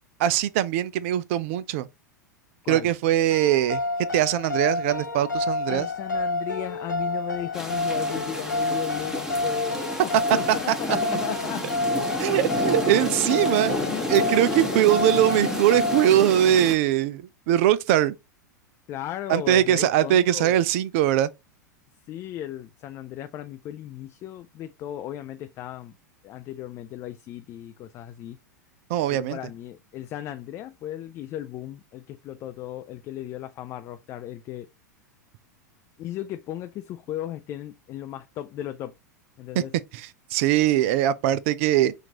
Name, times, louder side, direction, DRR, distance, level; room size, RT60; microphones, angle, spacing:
voice 1, 0.2-1.9 2.7-3.8 4.1-5.9 10.7-10.8 12.2-13.8 14.1-18.1 19.3-21.3 28.9-29.4 39.6-39.7 39.9-41.9, right 12 dB, 45° right, 0.4 m, -21 dB
sound 1, 3.3-16.1, left 2 dB, 80° left, 0.6 m, -29 dB
voice 2, 5.7-11.7 12.3-12.4 13.9-14.2 18.9-20.6 22.1-25.9 26.2-28.4 29.1-34.7 36.0-39.0 39.4-39.7, left 12 dB, 30° left, 0.3 m, -36 dB
sound 2, 7.5-16.8, left 1 dB, 5° right, 1.3 m, -31 dB
5.8 x 2.5 x 2.8 m
figure-of-eight pair, 90°, 10 cm